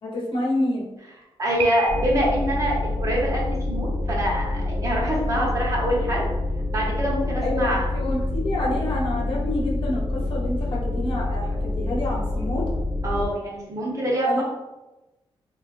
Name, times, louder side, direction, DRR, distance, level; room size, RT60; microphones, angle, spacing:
voice 1, 0.0-0.9 7.4-12.7 14.2-14.4, left 1 dB, 60° left, -3 dB, 0.9 m, -28 dB
voice 2, 1.4-6.2 6.7-7.8 13.0-14.4, equal, 35° right, -4 dB, 0.9 m, -25 dB
Piano, 1.6-2.5, right 4 dB, 70° right, 0.4 m, -33 dB
sound 1, 1.9-13.3, left 2 dB, 5° left, 0.6 m, -27 dB
3.9 x 2.3 x 2.5 m, 1.0 s
wide cardioid pair, 140°, 10 cm